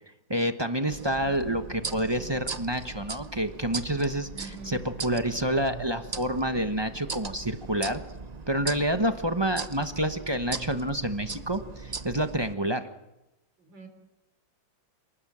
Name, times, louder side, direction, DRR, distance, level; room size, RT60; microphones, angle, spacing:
voice 1, 0.3-8.0 8.5-12.8, right 1 dB, 20° right, 8 dB, 0.9 m, -28 dB
sound 1, 0.9-12.5, right 4 dB, 40° right, 0.5 m, -39 dB
voice 2, 4.3-4.8 13.6-13.9, right 2 dB, 70° right, 6 dB, 4.6 m, -44 dB
28.5 x 20.0 x 7.5 m, 0.94 s
omnidirectional pair, 2.1 m